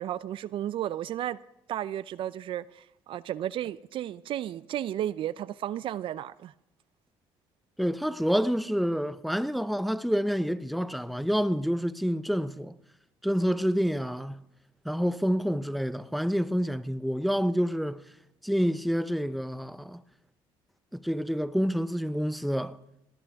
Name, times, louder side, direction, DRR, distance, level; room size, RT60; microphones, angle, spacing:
voice 1, 0.0-1.4 1.7-6.5, right 11 dB, 60° right, 0.5 m, -33 dB
voice 2, 7.8-12.7 13.2-14.4 14.8-18.0 18.4-20.0 20.9-22.8, equal, ahead, 0.7 m, -28 dB
19.0 x 18.0 x 3.6 m
supercardioid pair, 90°, 10 cm